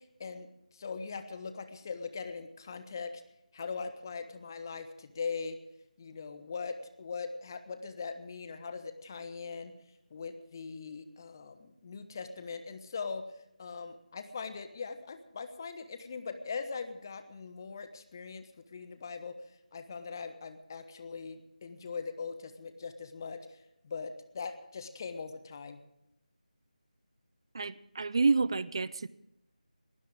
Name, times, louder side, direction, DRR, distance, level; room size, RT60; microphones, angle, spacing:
voice 1, 0.0-3.2 3.5-5.6 6.0-9.7 10.1-13.3 13.6-19.4 19.7-25.8, left 5 dB, 25° left, 10 dB, 1.1 m, -41 dB
voice 2, 27.5-29.1, right 4 dB, 35° right, 19 dB, 0.6 m, -28 dB
21.0 x 16.0 x 3.6 m, 0.83 s
figure-of-eight pair, 160°, 4 cm